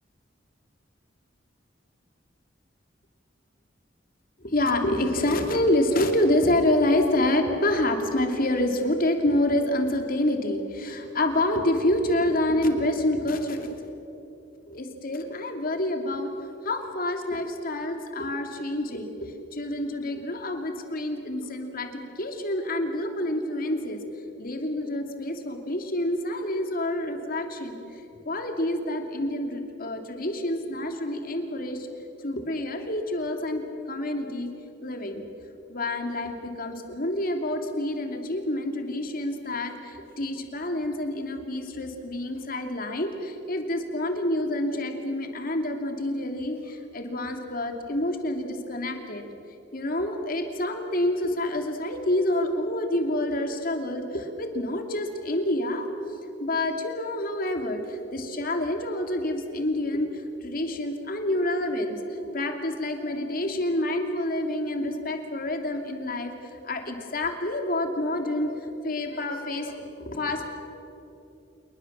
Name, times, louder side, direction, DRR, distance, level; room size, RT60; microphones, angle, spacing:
voice 1, 4.4-13.7 14.7-16.3 16.6-24.0 24.4-31.9 32.2-33.6 33.9-34.5 34.8-35.3 35.7-49.2 49.7-55.9 56.4-68.6 68.8-70.5, left 1 dB, 50° left, 5 dB, 2.7 m, -27 dB
27.5 x 20.5 x 7.3 m, 2.8 s
head